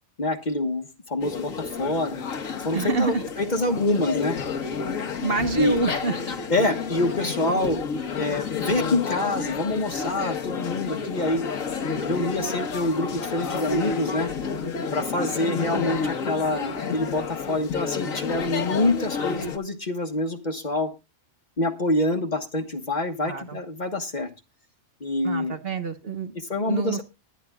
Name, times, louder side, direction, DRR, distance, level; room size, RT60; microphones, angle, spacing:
voice 1, 0.2-2.2 2.6-4.4 5.6-5.8 6.5-7.8 8.2-11.5 12.0-14.3 14.9-20.9 21.6-24.3 25.0-25.5 26.3-27.0, left 2 dB, 35° left, 6 dB, 1.3 m, -26 dB
sound 1, 1.2-19.6, left 5 dB, 90° left, 1.6 m, -30 dB
voice 2, 2.7-3.2 5.2-6.4 23.2-23.6 25.2-26.3 26.7-27.0, right 4 dB, 50° right, 8 dB, 1.4 m, -27 dB
19.5 x 11.0 x 2.3 m, 0.26 s
omnidirectional pair, 1.3 m